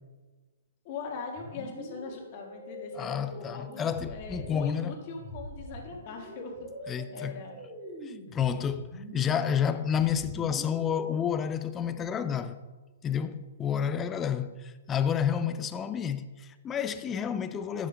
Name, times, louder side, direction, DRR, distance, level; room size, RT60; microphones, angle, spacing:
voice 1, 0.8-7.6, left 4 dB, 45° left, 1.7 m, -41 dB
sound 1, 1.4-11.3, equal, 20° right, 1.7 m, -44 dB
voice 2, 3.0-5.0 6.9-7.4 8.1-12.6 13.0-17.9, left 8 dB, 20° left, 0.4 m, -30 dB
11.0 x 7.1 x 2.3 m
hypercardioid pair, 140°, 0 cm